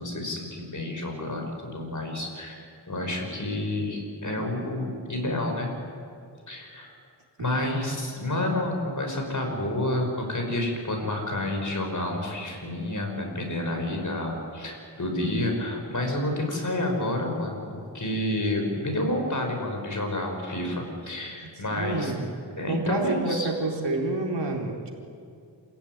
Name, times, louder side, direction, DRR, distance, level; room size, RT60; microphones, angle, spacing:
voice 1, 0.0-5.7 6.5-6.9 7.4-22.1 22.5-23.5, left 1 dB, 45° left, 2 dB, 6.3 m, -29 dB
voice 2, 7.4-7.8 21.4-22.3 22.7-24.9, right 2 dB, 70° right, 1 dB, 4.1 m, -29 dB
27.5 x 16.5 x 9.8 m, 2.3 s
wide cardioid pair, 70°, 43 cm